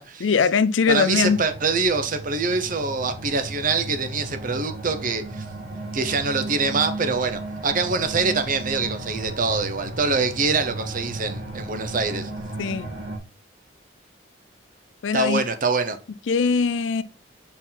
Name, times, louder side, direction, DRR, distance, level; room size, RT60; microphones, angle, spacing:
voice 1, 0.2-1.4 12.6-12.9 15.0-15.4 16.3-17.0, left 5 dB, 80° left, 0.5 m, -21 dB
voice 2, 0.9-5.5 5.9-12.3 15.1-16.0, right 4 dB, 45° right, 0.8 m, -24 dB
sound 1, 1.1-13.2, right 2 dB, 70° right, 2.2 m, -35 dB
5.7 x 4.5 x 4.0 m
head